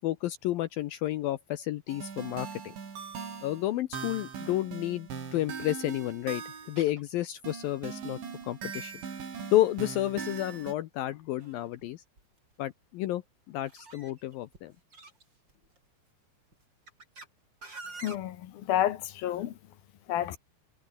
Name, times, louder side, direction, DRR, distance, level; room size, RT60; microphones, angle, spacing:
voice 1, 0.0-2.7 3.4-8.9 9.5-12.0 12.6-13.2 13.5-14.7, left 14 dB, 80° left, 2.1 m, -31 dB
sound 1, 1.9-6.9 7.4-10.7, right 6 dB, 75° right, 7.8 m, -40 dB
sound 2, 5.9-6.1 6.8-7.4 7.7-7.8 8.1-8.2 8.4-8.9 10.0-10.1 10.8-11.9 12.2-12.5 13.6-15.8 16.5-17.3 17.6-18.2, right 3 dB, 25° right, 5.9 m, -48 dB
voice 2, 18.0-19.5 20.1-20.4, left 12 dB, 65° left, 2.9 m, -30 dB
omnidirectional pair, 5.2 m